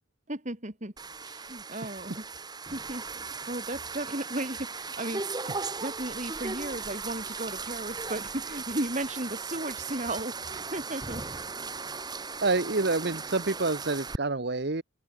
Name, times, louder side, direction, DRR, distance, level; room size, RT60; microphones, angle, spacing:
voice 1, 0.3-0.9 1.2-2.2 2.7-3.1 3.5-5.4 5.8-11.2, right 1 dB, 35° right, 2.7 m, -35 dB
sound 1, 1.0-14.2, right 4 dB, 20° right, 1.4 m, -37 dB
voice 2, 12.4-14.8, right 3 dB, 55° right, 1.1 m, -28 dB
head